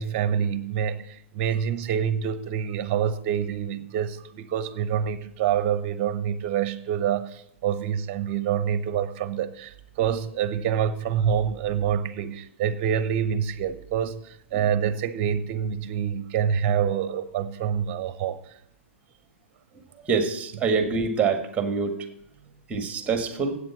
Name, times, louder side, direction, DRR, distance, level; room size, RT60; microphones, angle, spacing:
voice 1, 0.0-18.4, right 8 dB, 45° right, 0.8 m, -26 dB
voice 2, 20.1-22.0 22.7-23.6, right 5 dB, 20° right, 1.7 m, -25 dB
8.3 x 7.5 x 7.3 m
hypercardioid pair, 110°, 7 cm